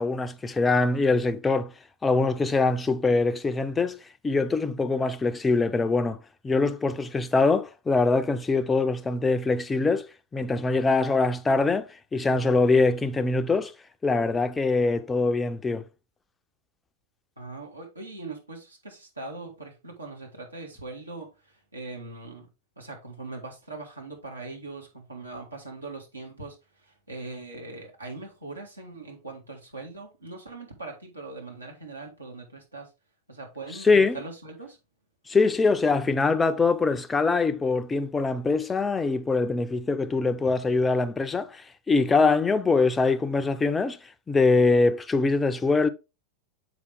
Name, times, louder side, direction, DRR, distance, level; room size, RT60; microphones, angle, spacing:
voice 1, 0.0-1.7 2.0-4.0 4.2-6.2 6.4-10.1 10.3-13.7 14.0-15.9 33.8-34.2 35.3-44.0 44.3-45.9, left 3 dB, 15° left, 0.5 m, -23 dB
voice 2, 17.4-22.5 22.8-26.6 26.8-32.9 33.3-34.8, right 3 dB, 80° right, 1.8 m, -41 dB
6.8 x 4.7 x 3.4 m
figure-of-eight pair, 90°, 0 cm